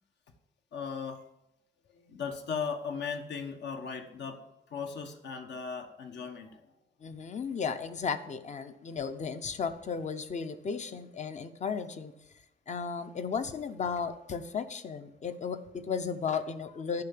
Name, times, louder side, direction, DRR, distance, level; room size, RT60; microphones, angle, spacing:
voice 1, 0.7-1.2 1.9-6.7 7.2-7.4, left 6 dB, 70° left, 5 dB, 1.3 m, -38 dB
voice 2, 7.0-12.1 12.7-17.0, left 6 dB, 40° left, 10 dB, 0.7 m, -35 dB
10.5 x 5.7 x 8.5 m, 0.86 s
wide cardioid pair, 165°, 19 cm